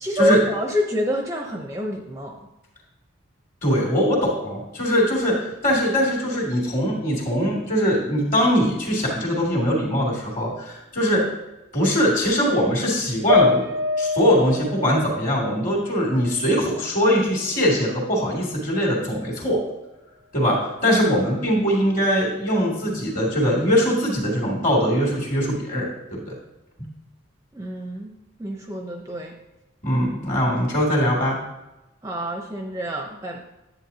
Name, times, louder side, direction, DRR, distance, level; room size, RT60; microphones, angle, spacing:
voice 1, 0.0-2.4 27.5-29.4 32.0-33.4, equal, 15° right, 1 dB, 0.7 m, -27 dB
voice 2, 3.6-11.2 11.7-13.6 14.0-19.6 20.3-26.3 29.8-31.4, equal, 40° left, -2 dB, 2.6 m, -21 dB
sound 1, 13.3-16.7 17.1-18.1, left 2 dB, 65° right, 0.6 m, -26 dB
10.5 x 8.5 x 2.8 m, 0.99 s
head